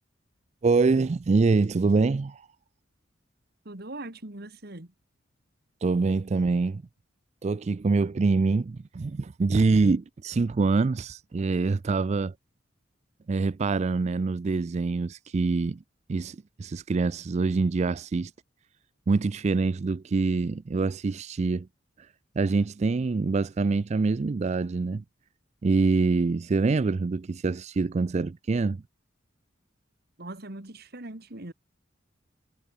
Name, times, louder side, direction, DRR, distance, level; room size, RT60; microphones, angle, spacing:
voice 1, 0.6-2.5 5.8-6.8 7.4-12.3 13.3-15.8 16.1-18.3 19.1-21.7 22.4-25.0 25.6-28.8, right 3 dB, 35° right, 0.4 m, -25 dB
voice 2, 3.6-4.9 30.2-31.5, right 2 dB, 55° right, 2.4 m, -40 dB
head